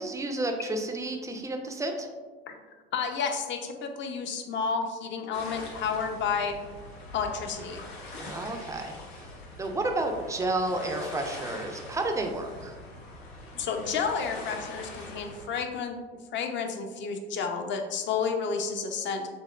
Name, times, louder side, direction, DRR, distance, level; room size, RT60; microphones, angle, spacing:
voice 1, 0.0-2.1 8.2-9.3 9.6-12.8, right 2 dB, 10° right, 4 dB, 0.4 m, -31 dB
voice 2, 2.9-6.5 7.1-7.8 13.6-16.0 16.3-19.3, left 5 dB, 40° left, 5 dB, 0.5 m, -31 dB
sound 1, 5.3-15.5, left 2 dB, 85° left, 0.7 m, -43 dB
5.9 x 2.1 x 2.3 m, 1.4 s
hypercardioid pair, 75°, 31 cm